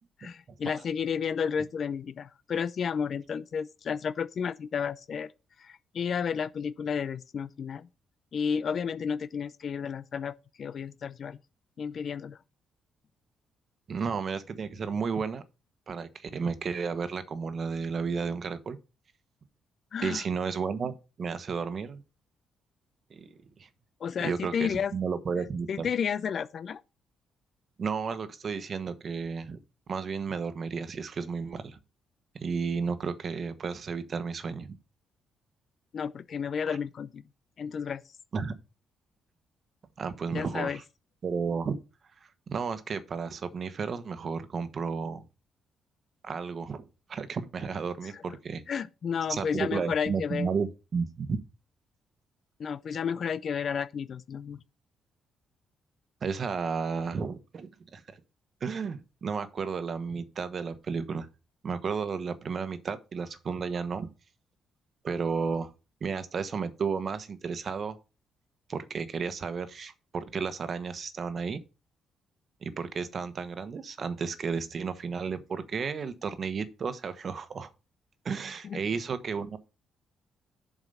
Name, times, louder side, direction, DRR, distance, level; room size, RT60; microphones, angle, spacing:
voice 1, 0.2-5.3 5.6-7.9 8.3-11.4 11.8-12.4 19.9-20.2 24.0-24.9 25.7-26.8 35.9-37.2 37.6-38.0 40.3-40.8 48.1-48.2 48.7-50.5 52.6-54.6 78.6-78.8, left 7 dB, 55° left, 0.5 m, -32 dB
voice 2, 13.9-15.4 15.9-18.8 20.0-22.0 23.1-23.7 24.2-25.9 27.8-29.6 29.9-31.8 32.4-34.8 36.7-36.8 38.3-38.5 40.0-40.8 41.2-41.8 42.5-45.2 46.2-48.6 49.3-51.4 56.2-58.0 58.6-61.3 61.6-64.1 65.0-65.7 66.0-68.0 68.7-71.6 72.6-77.7 78.2-79.6, right 5 dB, 50° right, 1.2 m, -33 dB
7.7 x 4.8 x 5.4 m
cardioid pair, 90°, 0 cm